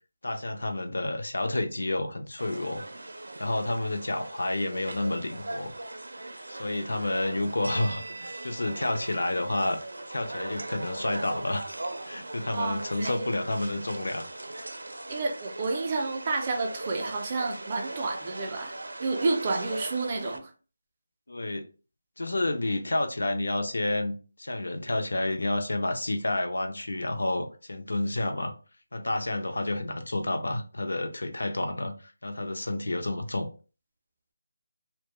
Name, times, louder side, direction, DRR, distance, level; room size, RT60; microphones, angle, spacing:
voice 1, 0.2-2.8 3.4-5.7 6.5-9.8 10.1-11.7 12.0-14.3 21.3-21.6 22.2-28.5 28.9-33.5, left 2 dB, 80° left, 0.5 m, -30 dB
sound 1, 2.4-20.4, right 2 dB, 85° right, 0.4 m, -39 dB
voice 2, 12.5-13.2 15.1-20.5, right 3 dB, 25° right, 0.4 m, -30 dB
2.1 x 2.1 x 2.9 m
figure-of-eight pair, 175°, 0 cm